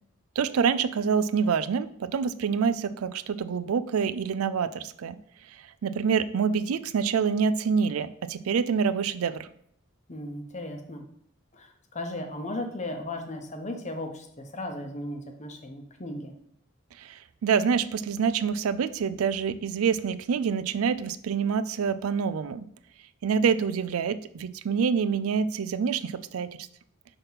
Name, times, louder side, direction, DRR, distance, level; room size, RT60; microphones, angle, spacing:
voice 1, 0.4-5.2 5.8-9.5 17.0-17.1 17.4-22.6 23.2-26.5, right 6 dB, 90° right, 13 dB, 0.4 m, -26 dB
voice 2, 10.1-11.0 11.5-16.3, left 1 dB, 35° left, 5 dB, 0.8 m, -36 dB
5.7 x 3.6 x 5.6 m, 0.67 s
head